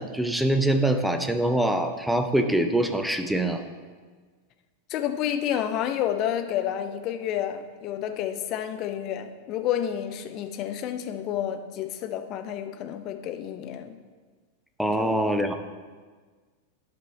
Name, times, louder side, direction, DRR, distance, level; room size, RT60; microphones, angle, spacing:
voice 1, 0.0-3.6 14.8-15.5, right 1 dB, ahead, 6 dB, 0.7 m, -24 dB
voice 2, 4.9-14.0 15.0-15.1, left 10 dB, 40° left, 7 dB, 0.7 m, -30 dB
11.0 x 5.4 x 4.3 m, 1.5 s
figure-of-eight pair, 90°, 0 cm